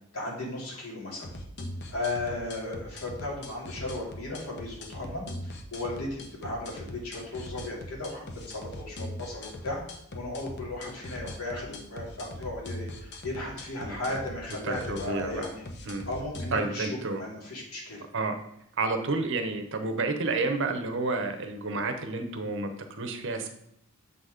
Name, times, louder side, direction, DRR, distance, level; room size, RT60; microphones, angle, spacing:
voice 1, 0.1-1.3 1.9-9.8 10.1-15.6 16.1-18.0, left 2 dB, 80° left, -2 dB, 2.3 m, -36 dB
sound 1, 1.2-16.6, left 1 dB, 50° left, 0.9 m, -41 dB
voice 2, 13.8-14.2 14.6-15.4 15.9-16.1 16.5-17.2 18.1-18.4 18.8-23.5, right 3 dB, 60° right, 7 dB, 0.8 m, -30 dB
7.1 x 4.1 x 4.9 m, 0.74 s
head